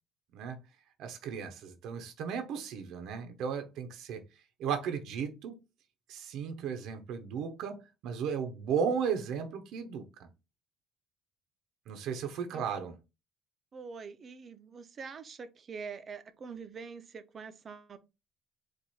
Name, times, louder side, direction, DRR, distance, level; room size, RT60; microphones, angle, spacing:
voice 1, 1.0-4.2 4.6-5.6 6.1-10.3 11.9-13.0, right 7 dB, 75° right, 0.7 m, -35 dB
voice 2, 13.7-18.0, right 5 dB, 35° right, 0.6 m, -45 dB
4.6 x 2.5 x 4.1 m
cardioid pair, 150°, 0 cm